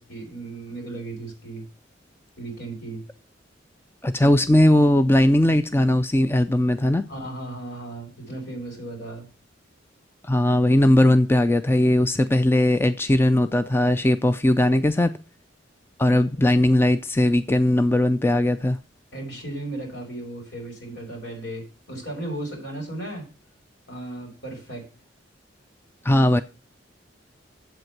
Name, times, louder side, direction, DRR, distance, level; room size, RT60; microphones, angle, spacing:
voice 1, 0.0-1.7 2.4-3.0 7.1-9.3 19.1-23.3 23.9-24.9, right 2 dB, 65° left, 5.6 m, -35 dB
voice 2, 4.0-7.0 10.2-15.1 16.0-18.8 26.0-26.4, left 1 dB, 15° left, 0.4 m, -19 dB
8.1 x 7.9 x 5.9 m
head